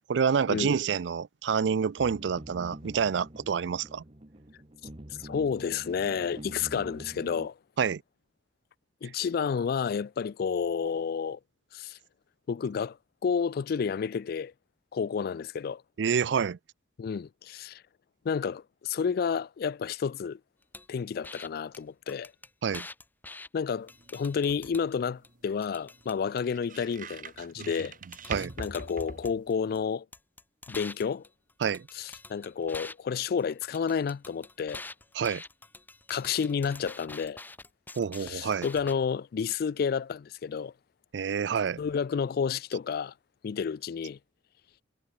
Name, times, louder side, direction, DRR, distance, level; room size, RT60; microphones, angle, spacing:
voice 1, 0.1-4.0 7.8-8.0 16.0-16.6 22.6-22.9 27.6-27.7 28.3-28.5 31.6-31.9 35.1-35.4 38.0-38.7 41.1-41.8, right 6 dB, 75° right, 0.4 m, -28 dB
sound 1, 2.0-7.5, right 1 dB, 35° right, 1.7 m, -46 dB
voice 2, 5.2-7.6 9.0-11.4 11.7-12.0 12.5-14.5 14.9-15.8 17.0-17.8 18.2-20.4 20.9-22.3 23.5-28.0 28.3-30.1 30.7-31.2 31.9-34.8 36.1-37.4 38.2-40.7 41.8-43.1 43.4-44.2, left 6 dB, 55° left, 0.3 m, -30 dB
sound 2, 20.7-20.9 21.2-21.5 21.7-21.8 22.1-23.5 23.9-24.9 25.2-26.4 27.8-27.9 28.1-29.8 30.1-32.9 33.2-38.9, left 3 dB, 10° left, 0.6 m, -46 dB
sound 3, 23.7-29.9, right 4 dB, 50° right, 2.5 m, -45 dB
head